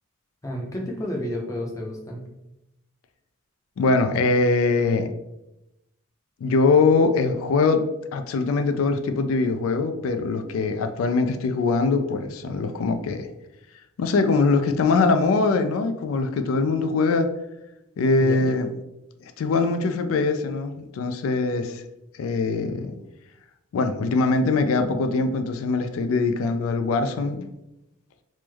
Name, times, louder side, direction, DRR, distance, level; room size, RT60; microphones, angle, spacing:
voice 1, 0.4-2.2 18.2-18.4, left 1 dB, 15° left, 0 dB, 0.5 m, -31 dB
voice 2, 3.8-5.1 6.4-7.8 8.1-13.3 14.0-17.3 18.0-18.7 19.4-21.8 22.2-22.9 23.7-27.5, left 3 dB, 90° left, 7 dB, 0.3 m, -22 dB
3.1 x 2.0 x 3.3 m, 0.89 s
head